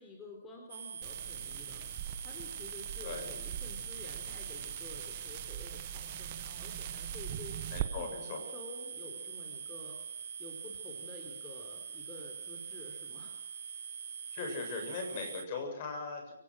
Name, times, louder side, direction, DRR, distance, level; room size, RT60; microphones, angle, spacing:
voice 1, 0.0-1.9 2.2-7.6 8.0-10.0 10.4-13.4, left 2 dB, 15° left, 1 dB, 4.0 m, -50 dB
sound 1, 0.7-15.4, right 7 dB, 65° right, 1.1 m, -44 dB
sound 2, 1.0-7.9, right 12 dB, 35° right, 1.5 m, -42 dB
voice 2, 7.7-8.4 14.3-16.3, left 4 dB, 40° left, 4 dB, 7.4 m, -39 dB
28.5 x 18.5 x 6.5 m, 0.78 s
hypercardioid pair, 160°, 0 cm